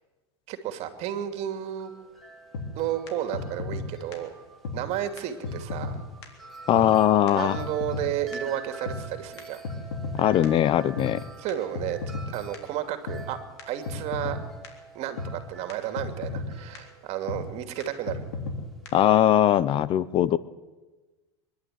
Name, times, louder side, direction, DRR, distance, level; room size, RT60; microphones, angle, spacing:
voice 1, 0.5-1.9 2.8-4.3 4.7-6.0 6.8-9.6 11.4-12.0 12.3-13.4 13.7-14.4 14.9-18.2, right 11 dB, 50° right, 7 dB, 2.6 m, -32 dB
Wind chime, 1.3-19.2, right 4 dB, ahead, 3.6 m, -47 dB
sound 1, 2.5-2.7 3.1-3.2 3.3-3.8 4.1-4.2 4.6-4.8 5.2-5.3 5.4-5.9 6.2-6.3 6.7-6.9 7.3-7.4 7.5-8.0 8.3-8.4 8.8-9.0 9.4-10.2 10.4-10.5 11.0-11.1 11.5-11.6 11.7-12.3 12.5-12.6 13.1-13.2 13.6-13.7 13.8-14.4 14.6-14.7 15.2-15.3 15.7-15.8 16.0-16.5 16.7-16.8 17.3-17.4 17.8-17.9 18.1-18.6 18.8-18.9, left 4 dB, 90° left, 3.7 m, -33 dB
voice 2, 6.7-7.6 10.1-11.2 18.9-20.4, left 11 dB, 40° left, 18 dB, 0.8 m, -20 dB
24.5 x 11.5 x 9.3 m, 1.2 s
supercardioid pair, 115°, 14 cm